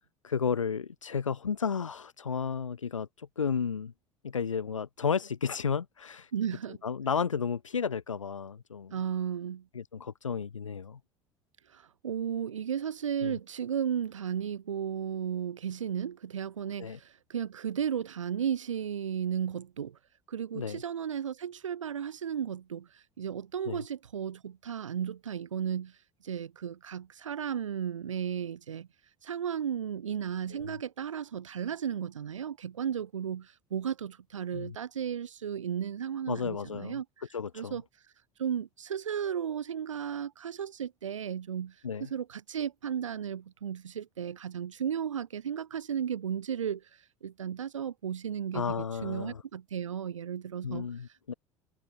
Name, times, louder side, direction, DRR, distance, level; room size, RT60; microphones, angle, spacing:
voice 1, 0.2-3.9 4.2-6.3 6.8-8.9 9.7-11.0 13.2-13.4 16.8-17.0 20.5-20.8 23.7-23.8 30.5-30.7 34.5-34.7 36.3-37.0 37.3-37.7 41.8-42.1 48.5-49.4 50.6-51.3, left 6 dB, 80° left, 2.0 m, -33 dB
voice 2, 6.3-6.8 8.9-9.7 11.7-20.0 20.3-26.0 26.2-28.9 29.2-37.2 37.5-37.8 38.4-51.4, right 8 dB, 75° right, 3.6 m, -34 dB
figure-of-eight pair, 65°, 16 cm